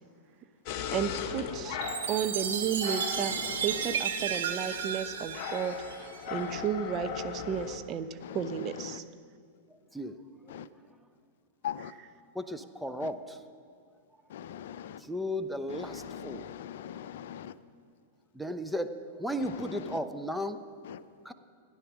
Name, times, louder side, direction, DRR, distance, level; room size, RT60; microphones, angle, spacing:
sound 1, 0.7-7.8, left 7 dB, 50° left, 1.1 m, -39 dB
voice 1, 0.9-1.8 2.1-5.8 6.3-9.0, right 8 dB, 35° right, 10 dB, 0.7 m, -33 dB
Chime, 1.8-6.3, right 8 dB, 70° right, 1.1 m, -34 dB
voice 2, 3.1-4.0 6.3-6.7 8.2-9.0 10.5-10.7 11.6-11.9 13.0-13.1 14.3-15.0 15.7-17.6 19.4-20.0 20.8-21.0, left 10 dB, 65° left, 15 dB, 0.5 m, -41 dB
voice 3, 12.3-13.4 15.1-16.4 18.3-18.9 19.2-20.6 21.2-21.3, equal, 5° right, 8 dB, 0.8 m, -34 dB
14.0 x 10.0 x 6.1 m, 2.3 s
hypercardioid pair, 105°, 0 cm